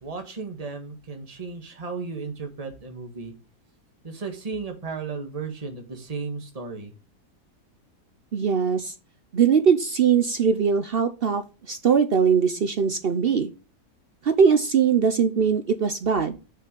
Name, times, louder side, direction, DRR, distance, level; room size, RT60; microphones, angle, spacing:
voice 1, 0.0-3.3 4.0-6.9, right 4 dB, 25° right, 4 dB, 1.5 m, -34 dB
voice 2, 8.3-8.9 9.3-11.4 11.7-13.5 14.2-16.4, right 6 dB, 60° right, 10 dB, 0.6 m, -21 dB
6.6 x 6.4 x 5.3 m, 0.32 s
omnidirectional pair, 1.8 m